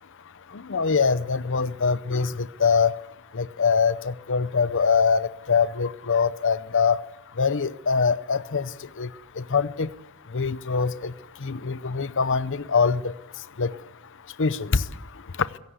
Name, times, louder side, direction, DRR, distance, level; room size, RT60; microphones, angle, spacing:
voice 1, 0.5-2.9 3.3-7.0 7.4-9.1 9.4-9.9 10.3-11.1 11.4-13.1 13.6-13.8 14.4-14.9 15.4-15.5, left 5 dB, 60° left, 0.7 m, -23 dB
22.0 x 17.5 x 8.2 m
head